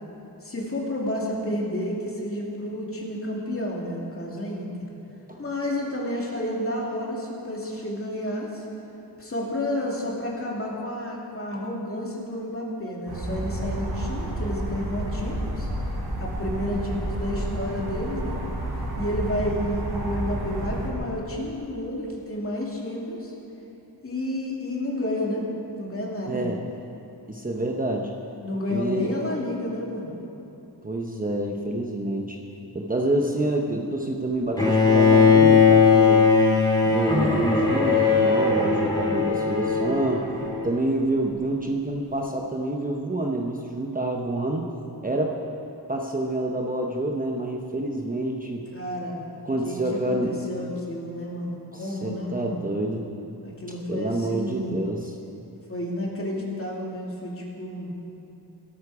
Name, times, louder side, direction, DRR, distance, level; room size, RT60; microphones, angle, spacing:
voice 1, 0.4-4.7 5.4-8.7 9.2-15.7 16.2-18.4 19.0-23.3 24.0-25.5 25.8-26.4 28.4-30.1 48.7-49.3 49.6-52.7 53.4-54.8 55.7-57.9, left 1 dB, 35° left, -3 dB, 2.7 m, -30 dB
sound 1, 13.1-20.9, right 1 dB, 65° right, 3.2 m, -30 dB
voice 2, 26.3-26.6 27.3-28.1 28.7-29.1 30.8-32.4 32.7-36.3 36.9-40.3 40.6-44.7 45.0-45.4 45.9-48.6 49.5-50.4 51.7-53.1 53.9-55.1, right 1 dB, 20° right, 1 dB, 0.9 m, -27 dB
Bowed string instrument, 34.6-40.6, left 5 dB, 10° left, 2.9 m, -19 dB
17.5 x 13.0 x 4.9 m, 2.9 s
wide cardioid pair, 150°, 40 cm